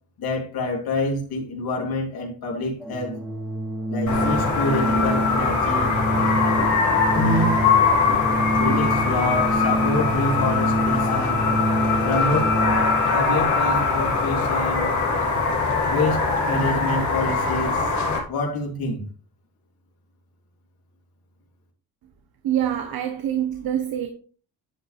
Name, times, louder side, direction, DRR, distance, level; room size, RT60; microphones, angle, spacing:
voice 1, 0.2-3.2 3.9-5.9 7.1-7.6 8.6-11.4 12.0-12.5 13.1-14.9 15.9-19.0, left 2 dB, 70° left, 3.3 m, -27 dB
Organ, 2.8-13.1, right 1 dB, ahead, 0.9 m, -26 dB
sound 1, 4.1-18.2, left 4 dB, 50° left, 3.3 m, -22 dB
voice 2, 22.4-24.1, right 10 dB, 65° right, 1.3 m, -25 dB
10.5 x 8.1 x 3.4 m
cardioid pair, 175°, 38 cm